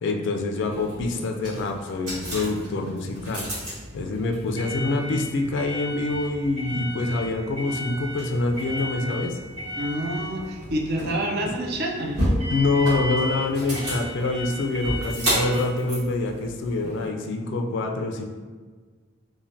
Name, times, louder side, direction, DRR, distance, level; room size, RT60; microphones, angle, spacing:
voice 1, 0.0-3.5 3.9-9.4 12.5-18.2, left 2 dB, 60° left, 4 dB, 0.3 m, -26 dB
sound 1, 0.6-17.1, equal, 70° right, 1.5 m, -32 dB
voice 2, 9.8-12.3, right 1 dB, 50° right, 1 dB, 0.4 m, -28 dB
3.2 x 2.1 x 2.6 m, 1.5 s
head